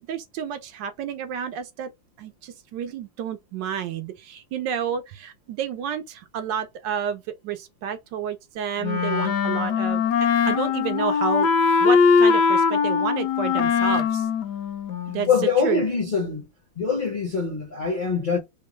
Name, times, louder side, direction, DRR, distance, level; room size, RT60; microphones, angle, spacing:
voice 1, 0.1-1.9 2.2-10.1 10.5-11.5 11.8-14.3 15.1-15.3 15.6-15.8, right 7 dB, 75° right, 1.1 m, -30 dB
Wind instrument woodwind instrument, 8.8-15.4, left 6 dB, 70° left, 1.1 m, -21 dB
voice 2, 15.3-16.5 16.8-18.4, left 5 dB, 40° left, 0.7 m, -23 dB
3.6 x 2.2 x 2.9 m
omnidirectional pair, 2.1 m